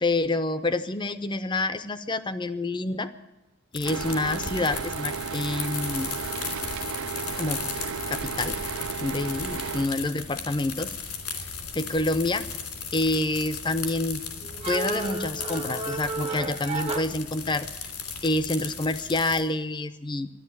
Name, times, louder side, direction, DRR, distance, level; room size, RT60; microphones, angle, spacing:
voice 1, 0.0-3.1 3.7-6.1 7.4-7.7 8.1-8.6 9.0-10.9 11.7-12.5 12.9-14.2 14.7-17.7 18.2-20.3, left 2 dB, 20° left, 13 dB, 0.6 m, -27 dB
sound 1, 3.7-19.4, left 6 dB, 90° left, 2.9 m, -36 dB
sound 2, 3.8-9.9, right 7 dB, 65° right, 0.5 m, -34 dB
sound 3, 14.0-17.9, right 3 dB, 25° right, 0.7 m, -33 dB
12.5 x 11.0 x 9.8 m, 1.0 s
head